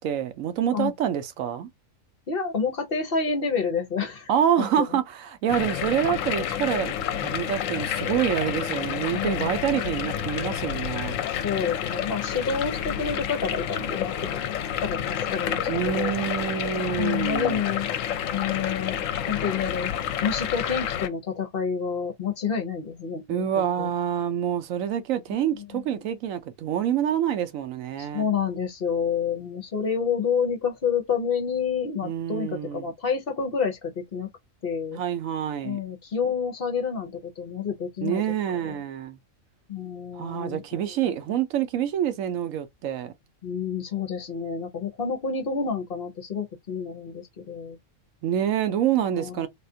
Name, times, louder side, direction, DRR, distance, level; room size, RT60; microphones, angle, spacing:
voice 1, 0.0-1.7 4.3-11.1 15.7-17.6 23.3-28.3 32.0-32.9 34.9-35.8 38.0-39.2 40.1-43.1 48.2-49.5, right 10 dB, 85° right, 1.0 m, -27 dB
voice 2, 2.3-4.3 4.6-5.0 9.1-9.6 11.3-14.4 14.8-16.2 17.0-17.9 18.3-19.0 19.3-19.9 20.2-23.5 23.8-23.9 25.7-25.8 28.0-34.3 34.6-35.0 35.6-38.8 39.7-40.8 43.4-47.8 49.2-49.5, left 6 dB, 50° left, 0.9 m, -29 dB
sound 1, 5.5-21.1, left 9 dB, 80° left, 0.9 m, -29 dB
3.5 x 2.4 x 2.6 m
omnidirectional pair, 1.3 m